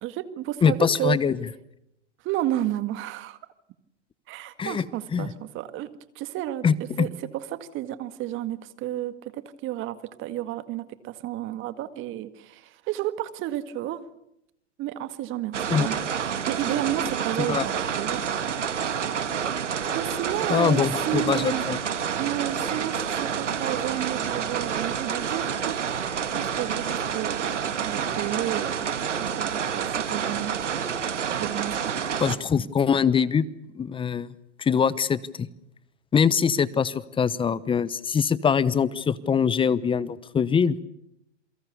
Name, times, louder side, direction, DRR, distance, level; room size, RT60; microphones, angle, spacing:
voice 1, 0.0-1.2 2.2-3.4 4.3-6.7 7.0-14.0 14.8-16.0 16.2-18.2 19.9-21.6 22.2-30.6 31.4-31.9, right 13 dB, 35° right, 12 dB, 1.9 m, -32 dB
voice 2, 0.6-1.4 4.6-4.8 5.1-5.3 6.6-7.1 15.7-15.9 17.4-17.6 20.5-21.8 32.2-33.5 33.8-34.3 34.6-35.5 36.1-40.8, left 6 dB, 15° left, 20 dB, 1.0 m, -23 dB
sound 1, 15.5-32.4, right 7 dB, 85° right, 2.0 m, -28 dB
28.5 x 23.5 x 6.8 m, 0.80 s
hypercardioid pair, 115°, 35 cm